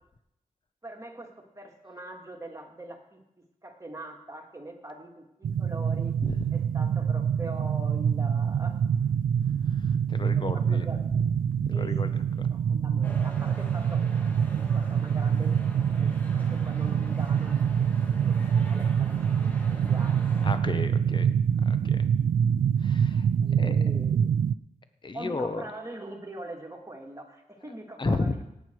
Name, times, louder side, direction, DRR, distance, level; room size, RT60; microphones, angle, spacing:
voice 1, 0.8-3.2 3.6-6.1 6.5-8.8 10.3-11.2 11.7-12.2 12.5-14.0 14.5-17.8 18.2-20.1 23.4-24.4 25.1-28.5, right 1 dB, 20° right, 1 dB, 2.3 m, -43 dB
sound 1, 5.4-24.5, right 7 dB, 85° right, 0.4 m, -25 dB
voice 2, 9.7-11.2 11.6-12.1 12.4-12.5 19.6-19.8 20.4-21.3 21.6-22.0 22.8-23.3 23.6-23.8 25.0-25.7 28.0-28.4, left 3 dB, 35° left, 9 dB, 1.0 m, -33 dB
sound 2, 13.0-20.5, equal, 10° left, 2.2 m, -46 dB
17.0 x 9.1 x 4.7 m, 0.84 s
wide cardioid pair, 85°, 14 cm